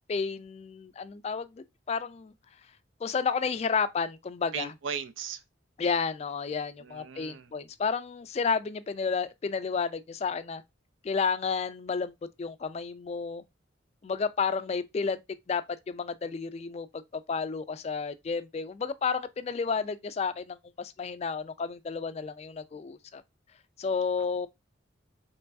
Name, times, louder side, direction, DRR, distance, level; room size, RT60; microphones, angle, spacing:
voice 1, 0.1-2.3 3.0-4.7 5.8-10.6 11.0-12.1 12.4-13.4 14.0-15.2 15.5-23.2 23.8-24.5, left 5 dB, 35° left, 0.3 m, -31 dB
voice 2, 4.5-5.4 6.8-7.5, right 6 dB, 85° right, 0.5 m, -37 dB
4.5 x 3.0 x 2.5 m
head